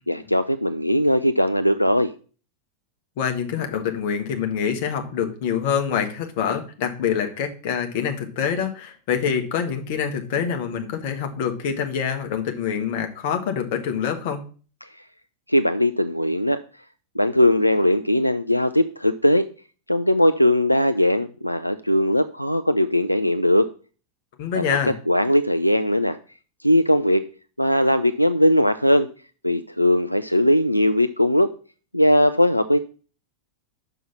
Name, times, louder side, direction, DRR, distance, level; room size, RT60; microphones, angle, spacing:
voice 1, 0.1-2.1 14.8-14.9 15.5-16.6 17.2-19.5 19.9-23.7 24.6-24.8 25.1-26.2 26.6-27.2 27.6-29.1 29.4-31.5 31.9-32.8, left 1 dB, 90° left, 11 dB, 0.3 m, -19 dB
voice 2, 3.2-14.4 24.4-24.9, left 7 dB, 50° left, 5 dB, 1.3 m, -25 dB
5.9 x 5.4 x 5.6 m, 0.39 s
figure-of-eight pair, 90°, 0 cm